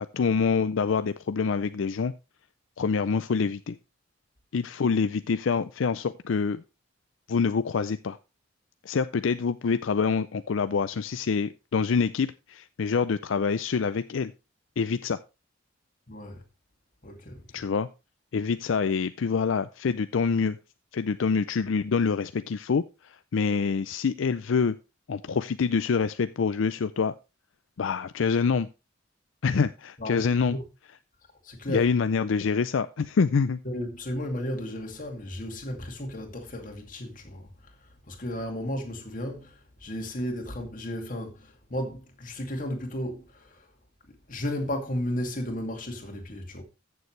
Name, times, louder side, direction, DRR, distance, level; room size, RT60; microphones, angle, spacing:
voice 1, 0.1-2.1 2.8-3.8 4.5-6.6 7.3-8.2 8.8-14.3 14.8-15.2 17.5-17.9 18.3-20.6 20.9-24.8 25.1-27.1 27.8-28.7 29.4-30.6 31.7-33.6, left 5 dB, 75° left, 0.4 m, -26 dB
voice 2, 16.1-16.4 17.0-17.6 30.0-30.6 31.4-31.9 33.6-43.7 44.1-46.6, equal, 40° left, 2.4 m, -34 dB
14.5 x 7.0 x 3.2 m
head